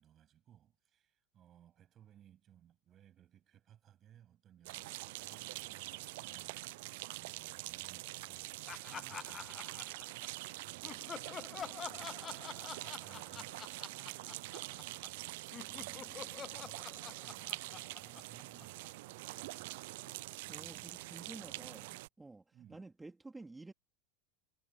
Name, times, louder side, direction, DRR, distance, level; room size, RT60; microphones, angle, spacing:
voice 1, 0.0-9.6 10.6-12.4 12.8-14.3 14.7-19.9 20.5-22.0 22.5-22.9, right 10 dB, 35° right, 7.9 m, -63 dB
sound 1, 4.6-22.1, right 21 dB, 70° right, 0.3 m, -45 dB
Laughter, 8.7-10.4 10.8-15.2 15.5-19.1, left 8 dB, 30° left, 0.5 m, -48 dB
voice 2, 20.5-21.9 22.2-23.7, right 3 dB, 10° right, 3.5 m, -51 dB
supercardioid pair, 110°, 0 cm